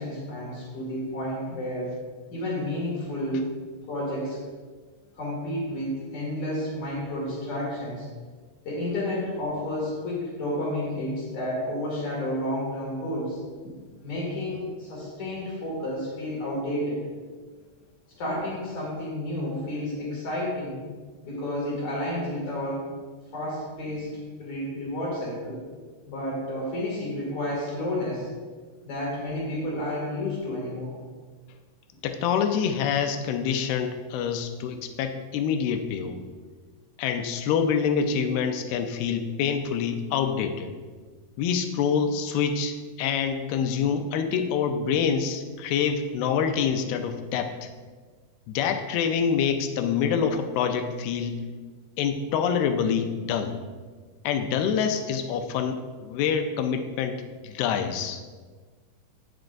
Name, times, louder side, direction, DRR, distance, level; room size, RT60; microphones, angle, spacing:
voice 1, 0.0-2.0 2.3-3.5 3.9-4.4 5.2-8.1 8.7-13.4 14.0-17.1 18.2-20.8 21.2-22.9 23.3-24.1 24.4-25.6 26.1-28.3 28.8-30.9, left 1 dB, 50° left, -5 dB, 3.5 m, -31 dB
voice 2, 32.0-36.2 37.0-40.7 41.4-47.7 48.5-51.4 52.0-53.6 54.2-58.2, left 7 dB, 90° left, 6 dB, 2.7 m, -26 dB
17.0 x 7.5 x 2.6 m, 1.5 s
omnidirectional pair, 4.4 m